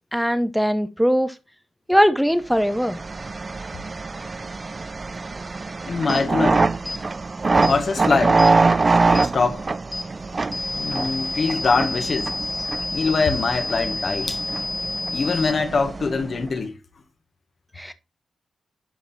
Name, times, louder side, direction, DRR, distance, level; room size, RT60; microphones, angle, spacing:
voice 1, 0.1-1.3 1.9-3.0 17.8-17.9, equal, ahead, 1.0 m, -20 dB
sound 1, 2.6-16.5, right 3 dB, 40° right, 0.6 m, -24 dB
voice 2, 5.9-6.7 7.6-8.4 8.9-9.7 10.4-12.3 12.9-14.4 15.1-16.8, left 4 dB, 60° left, 1.6 m, -23 dB
sound 2, 6.1-6.2 6.9-7.0 7.6-7.8 8.4-8.5 9.1-9.3 9.9-10.1 10.5-15.5, left 2 dB, 25° left, 1.5 m, -30 dB
11.0 x 5.3 x 4.3 m
cardioid pair, 55°, 0 cm